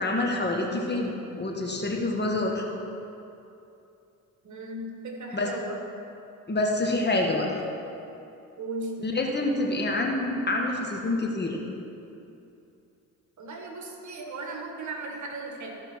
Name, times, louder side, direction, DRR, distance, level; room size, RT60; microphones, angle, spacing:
voice 1, 0.0-2.6 5.3-5.5 6.5-7.5 9.0-11.6, left 2 dB, 30° left, 0 dB, 1.6 m, -27 dB
voice 2, 4.4-5.8 8.6-9.2 13.4-15.7, right 2 dB, 55° right, 1 dB, 1.7 m, -36 dB
15.0 x 5.6 x 4.4 m, 2.8 s
supercardioid pair, 70°, 35 cm